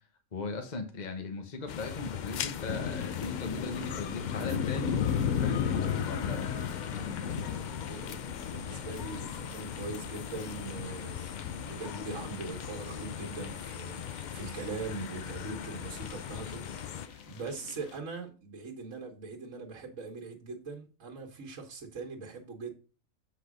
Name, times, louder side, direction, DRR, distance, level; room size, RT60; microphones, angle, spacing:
voice 1, 0.3-6.6, left 3 dB, 35° left, 1.1 m, -38 dB
sound 1, 1.7-17.1, left 9 dB, 70° left, 0.4 m, -40 dB
sound 2, 2.7-18.0, left 8 dB, 90° left, 1.2 m, -37 dB
voice 2, 6.9-22.7, right 3 dB, 70° right, 1.7 m, -42 dB
8.0 x 4.1 x 5.1 m
omnidirectional pair, 1.4 m